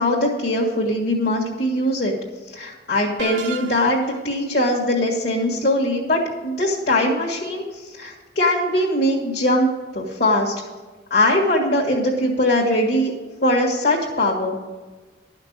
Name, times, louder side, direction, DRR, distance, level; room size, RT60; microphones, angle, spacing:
voice 1, 0.0-2.2 2.5-9.7 9.9-10.5 11.1-13.1 13.4-14.6, left 1 dB, 55° left, -4 dB, 1.9 m, -21 dB
sound 1, 3.2-4.2, right 7 dB, 80° right, 0.8 m, -33 dB
12.0 x 5.9 x 8.7 m, 1.3 s
head